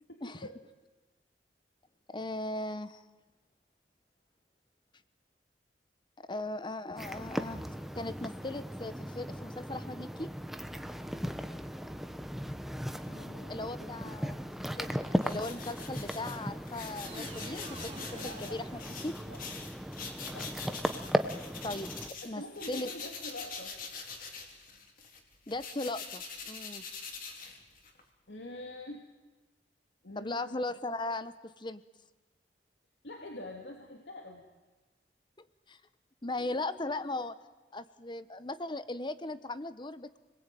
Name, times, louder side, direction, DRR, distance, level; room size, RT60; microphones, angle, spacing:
voice 1, 0.1-0.6 12.9-14.1 18.1-18.6 19.2-19.4 20.3-20.5 22.2-23.8 28.3-29.0 30.0-30.5 33.0-34.5, left 1 dB, 75° left, 2 dB, 2.8 m, -45 dB
voice 2, 2.1-3.0 6.2-7.6 7.9-10.3 13.5-14.4 14.8-15.0 15.2-18.1 18.4-19.2 21.6-22.4 22.7-22.9 25.5-26.8 30.2-31.8 35.4-35.8 36.2-37.4 37.7-40.2, left 2 dB, 25° left, 13 dB, 1.1 m, -38 dB
sound 1, 7.0-22.1, equal, ahead, 1.1 m, -37 dB
sound 2, 15.2-22.3 22.5-28.0, left 5 dB, 50° left, 3.8 m, -44 dB
sound 3, 17.0-19.4, right 2 dB, 35° right, 2.7 m, -48 dB
28.5 x 21.0 x 9.3 m, 1.2 s
head